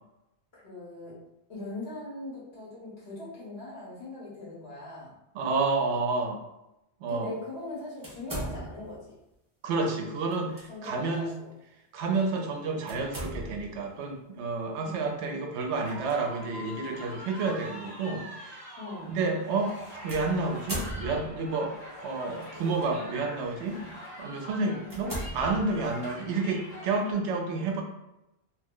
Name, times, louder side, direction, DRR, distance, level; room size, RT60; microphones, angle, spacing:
voice 1, 0.5-1.2 1.5-5.1 7.1-9.2 10.7-11.3 14.8-15.0 18.8-19.2 23.7-23.9 24.8-25.0, left 2 dB, 65° left, -6 dB, 1.4 m, -40 dB
voice 2, 5.3-6.4 7.0-7.3 9.6-11.3 11.9-18.7 19.1-23.8 24.2-27.8, right 3 dB, 80° right, 2 dB, 0.8 m, -30 dB
sound 1, 8.0-9.0 10.3-10.6 11.1-11.2 12.9-13.8 15.8-16.1 17.0-17.1 20.1-21.5 22.4-22.8 23.4-23.6 24.1-24.2 24.8-26.1, right 1 dB, 20° right, 0.8 m, -38 dB
sound 2, 15.7-27.1, left 1 dB, 40° left, 1.1 m, -44 dB
2.8 x 2.0 x 3.6 m, 0.90 s
omnidirectional pair, 1.2 m